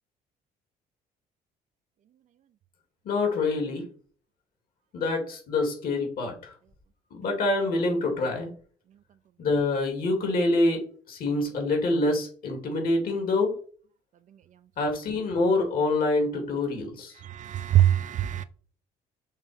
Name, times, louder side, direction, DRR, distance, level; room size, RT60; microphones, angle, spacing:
voice 1, 3.0-3.8 4.9-6.5 7.1-8.5 9.4-13.5 14.8-17.1, left 2 dB, 60° left, 2.7 m, -26 dB
voice 2, 17.3-18.4, right 12 dB, 45° right, 0.5 m, -22 dB
6.5 x 3.1 x 5.2 m
cardioid pair, 110°, 17 cm